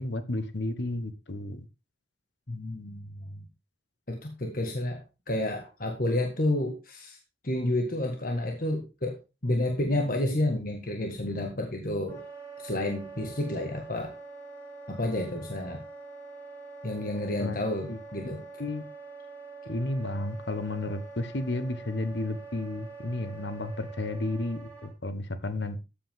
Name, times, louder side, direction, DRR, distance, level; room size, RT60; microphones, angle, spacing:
voice 1, 0.0-1.7 17.4-17.6 17.9-18.0 18.6-18.8 19.6-25.8, left 2 dB, 70° left, 1.2 m, -32 dB
voice 2, 2.5-3.4 4.1-7.2 7.4-9.2 9.4-12.2 12.6-14.1 14.9-15.8 16.8-18.4, left 1 dB, 50° left, 1.8 m, -30 dB
Wind instrument woodwind instrument, 12.1-24.9, right 4 dB, 10° left, 4.4 m, -45 dB
13.0 x 8.5 x 3.7 m
head